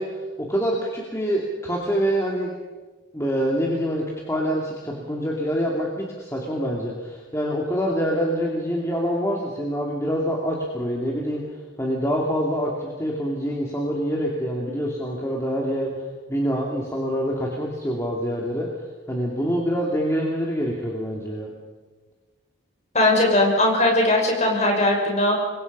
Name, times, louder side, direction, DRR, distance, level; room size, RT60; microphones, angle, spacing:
voice 1, 0.0-2.5 3.1-11.4 11.8-15.9 16.3-18.7 19.1-21.5, equal, 15° left, -2 dB, 2.8 m, -25 dB
voice 2, 22.9-25.4, left 1 dB, 35° left, 0 dB, 6.4 m, -19 dB
28.0 x 23.0 x 5.6 m, 1.3 s
head